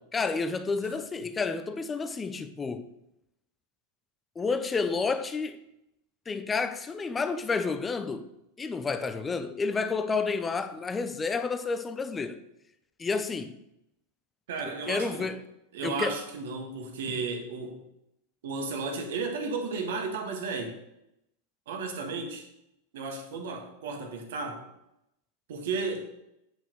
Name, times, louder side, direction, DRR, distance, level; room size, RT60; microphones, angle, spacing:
voice 1, 0.1-2.8 4.4-5.6 6.3-8.3 8.6-12.4 13.0-13.5 14.9-15.4 15.8-16.2, left 4 dB, 15° left, 0.7 m, -30 dB
voice 2, 14.5-15.3 15.7-17.8 18.4-20.8 21.7-22.5 22.9-24.6 25.5-26.1, right 4 dB, 55° right, 1.7 m, -34 dB
9.1 x 6.0 x 4.8 m
figure-of-eight pair, 90°, 0 cm